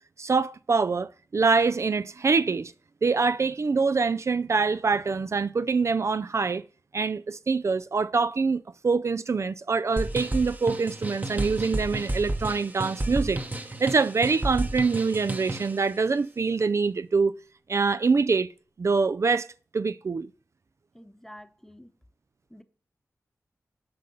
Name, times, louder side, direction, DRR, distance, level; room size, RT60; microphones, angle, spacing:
voice 1, 0.2-2.7 3.0-6.6 6.9-13.4 13.8-17.4 17.7-18.5 18.8-19.5 19.7-20.3, right 4 dB, 55° right, 0.4 m, -25 dB
sound 1, 10.0-15.8, right 1 dB, 30° right, 1.0 m, -31 dB
voice 2, 20.9-22.0 22.5-22.6, left 1 dB, 5° left, 0.9 m, -48 dB
7.7 x 5.1 x 6.9 m
cardioid pair, 45°, 6 cm